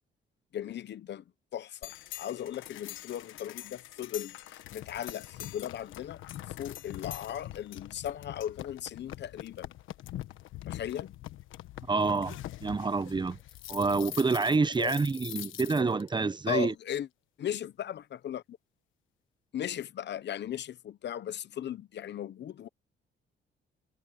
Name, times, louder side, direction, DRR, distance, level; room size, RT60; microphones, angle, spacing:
voice 1, 0.5-1.2 1.5-1.9 2.2-6.2 6.6-9.7 10.6-11.2 14.8-14.9 16.5-17.1 17.4-18.6 19.5-22.7, left 10 dB, 60° left, 1.0 m, -37 dB
sound 1, 1.8-16.1, left 14 dB, 85° left, 1.3 m, -44 dB
voice 2, 11.9-13.4 13.7-16.7, right 4 dB, 20° right, 0.9 m, -28 dB
cardioid pair, 90°, 20 cm